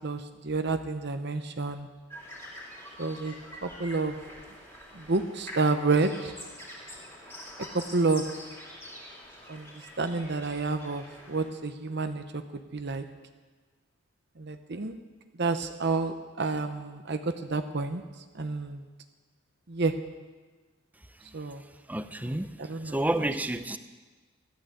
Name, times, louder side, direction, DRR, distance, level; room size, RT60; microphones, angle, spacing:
voice 1, 0.0-1.9 3.0-3.3 3.6-4.2 4.9-6.3 7.7-8.2 9.5-9.7 10.0-13.0 14.4-15.0 15.4-18.0 18.4-18.8 19.7-19.9 21.3-21.6 22.2-23.0, right 3 dB, 50° right, 7 dB, 0.8 m, -29 dB
sound 1, 2.1-11.5, equal, 10° left, 3.4 m, -45 dB
voice 2, 21.9-22.5 22.8-23.8, right 1 dB, 5° right, 11 dB, 0.5 m, -29 dB
15.0 x 12.0 x 8.0 m, 1.3 s
head